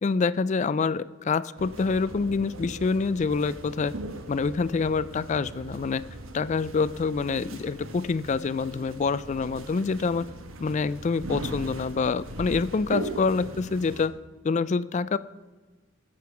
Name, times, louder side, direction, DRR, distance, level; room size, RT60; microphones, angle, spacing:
voice 1, 0.0-3.9 4.3-6.0 6.3-10.3 10.6-14.1 14.4-15.2, left 4 dB, 35° left, 17 dB, 0.3 m, -26 dB
sound 1, 1.6-14.1, right 1 dB, 85° right, 1.2 m, -39 dB
19.5 x 7.8 x 5.8 m, 1.3 s
head